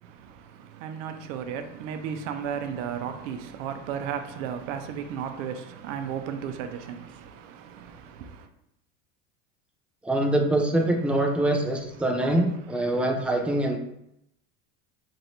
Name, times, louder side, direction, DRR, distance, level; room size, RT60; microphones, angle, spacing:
voice 1, 0.0-8.5 12.0-13.8, right 8 dB, 75° right, 0.6 m, -35 dB
voice 2, 10.0-13.8, right 1 dB, 5° right, 0.3 m, -24 dB
3.1 x 2.6 x 4.2 m
supercardioid pair, 110°, 38 cm